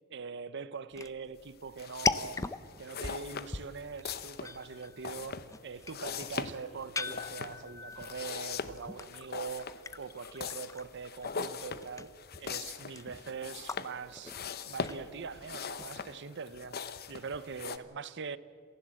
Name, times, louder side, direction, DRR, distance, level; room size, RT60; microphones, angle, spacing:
voice 1, 0.1-2.4 2.8-12.1 12.4-14.4 14.7-16.8 17.1-18.4, right 5 dB, 60° right, 0.7 m, -42 dB
sound 1, 0.9-16.0, left 3 dB, 15° left, 0.5 m, -41 dB
sound 2, 1.7-17.8, left 5 dB, 50° left, 0.9 m, -41 dB
27.5 x 15.0 x 7.7 m
head